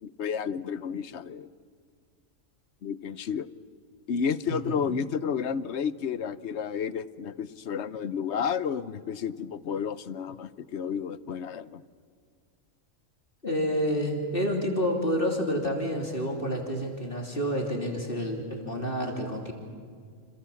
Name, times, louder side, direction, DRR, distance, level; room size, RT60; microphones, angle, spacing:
voice 1, 0.0-1.5 2.8-3.5 4.1-11.8, left 7 dB, 60° left, 15 dB, 1.1 m, -31 dB
voice 2, 4.5-4.8 13.4-19.5, equal, 40° left, 1 dB, 3.4 m, -29 dB
29.0 x 27.0 x 7.2 m, 2.1 s
omnidirectional pair, 1.4 m